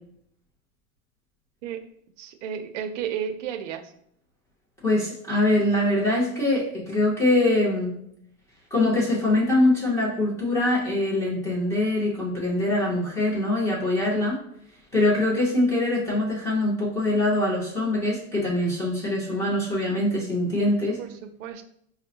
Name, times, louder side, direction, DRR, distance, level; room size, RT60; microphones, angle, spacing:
voice 1, 2.2-3.9 21.0-21.6, right 8 dB, 60° right, 8 dB, 0.5 m, -33 dB
voice 2, 4.8-8.0 8.7-14.4 14.9-21.0, left 1 dB, 5° left, -7 dB, 0.7 m, -23 dB
5.2 x 2.1 x 2.7 m, 0.71 s
supercardioid pair, 165°, 43 cm